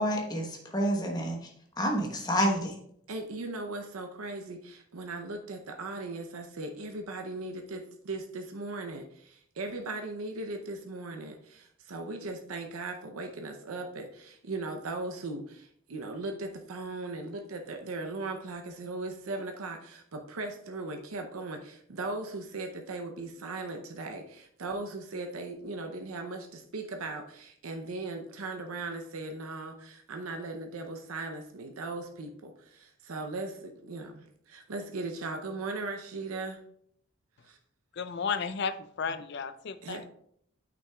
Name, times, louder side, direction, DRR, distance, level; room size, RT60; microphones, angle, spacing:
voice 1, 0.0-1.4 1.8-2.7, equal, 20° left, 0 dB, 1.0 m, -28 dB
voice 2, 3.1-36.6 37.4-37.6 39.1-39.2 39.8-40.0, right 2 dB, 80° right, 4 dB, 0.6 m, -38 dB
voice 3, 37.9-40.0, left 5 dB, 50° left, 11 dB, 0.4 m, -33 dB
8.9 x 6.0 x 2.3 m, 0.69 s
head